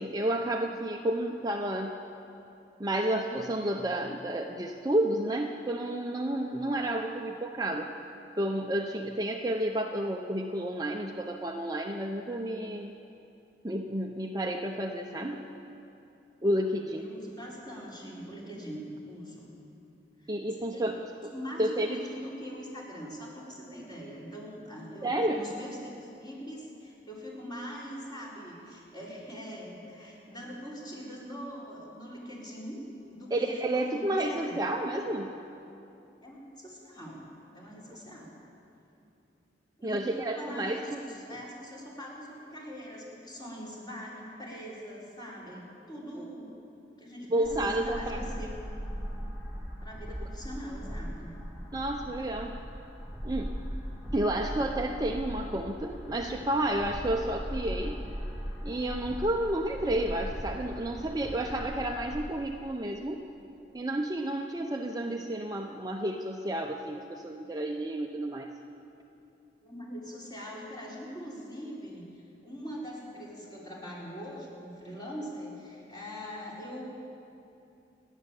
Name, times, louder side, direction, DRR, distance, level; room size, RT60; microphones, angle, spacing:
voice 1, 0.0-2.0 2.8-7.9 8.4-12.9 13.6-15.5 16.4-17.0 20.3-20.9 21.2-21.3 21.6-22.0 25.0-25.4 33.3-35.3 39.8-41.2 47.3-48.2 51.7-52.6 53.2-53.6 54.1-58.0 58.6-63.2 63.7-68.5, right 1 dB, 20° right, 2 dB, 0.8 m, -31 dB
voice 2, 16.9-19.5 20.2-20.8 21.3-32.8 33.1-34.6 36.2-37.2 37.5-38.3 39.8-46.5 47.0-48.5 49.8-51.3 69.6-76.8, equal, 25° left, -5 dB, 4.6 m, -42 dB
sound 1, 47.4-62.3, equal, 10° left, 3.3 m, -39 dB
29.0 x 11.0 x 8.4 m, 2.7 s
head